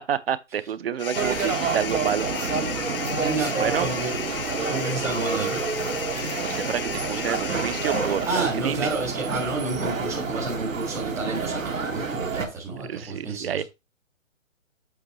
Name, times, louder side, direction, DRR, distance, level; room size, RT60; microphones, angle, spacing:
voice 1, 0.0-2.3 3.6-3.9 6.4-8.9 12.9-13.6, right 9 dB, 50° right, 0.7 m, -28 dB
sound 1, 1.0-8.7, left 8 dB, 45° left, 0.6 m, -34 dB
sound 2, 1.1-12.5, right 5 dB, 90° right, 1.5 m, -29 dB
voice 2, 3.1-4.2 4.6-5.6 8.2-13.6, right 3 dB, ahead, 0.4 m, -30 dB
7.8 x 5.3 x 3.0 m
figure-of-eight pair, 140°, 39 cm